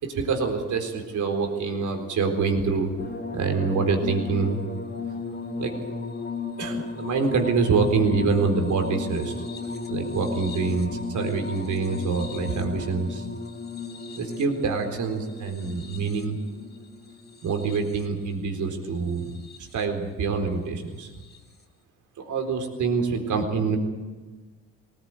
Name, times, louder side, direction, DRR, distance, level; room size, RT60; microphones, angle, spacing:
voice 1, 0.0-2.9 3.3-4.6 5.6-5.8 6.6-9.3 9.9-13.3 14.1-16.4 17.4-19.3 19.7-21.1 22.2-23.8, right 4 dB, 65° right, 4 dB, 4.1 m, -26 dB
sound 1, 3.0-18.2 19.1-19.8 21.2-21.4, left 3 dB, 30° left, 2.7 m, -35 dB
20.5 x 19.0 x 9.1 m, 1.3 s
cardioid pair, 85°, 33 cm